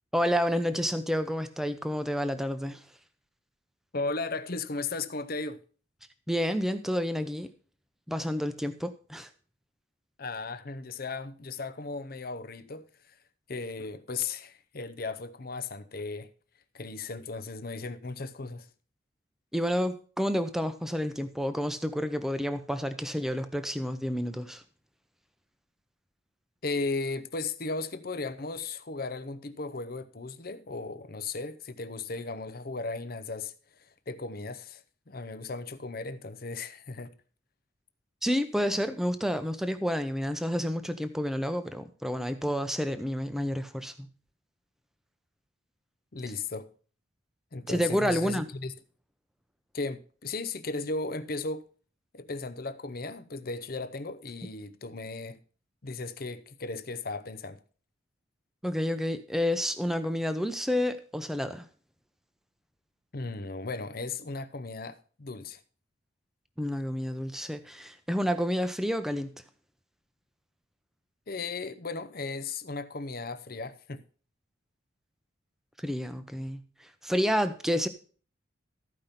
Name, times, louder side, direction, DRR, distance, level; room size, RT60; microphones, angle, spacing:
voice 1, 0.1-2.8 6.3-7.5 8.1-9.3 19.5-24.6 38.2-44.1 47.7-48.5 58.6-61.7 66.6-69.3 75.8-76.6 77.0-77.9, equal, ahead, 0.7 m, -29 dB
voice 2, 3.9-5.6 10.2-13.1 13.5-16.3 16.7-18.7 26.6-33.5 34.1-37.1 46.1-46.7 47.5-48.7 49.7-51.6 52.1-55.4 55.8-57.6 63.1-65.6 71.3-74.0, left 3 dB, 45° left, 0.7 m, -36 dB
13.5 x 5.2 x 5.7 m
head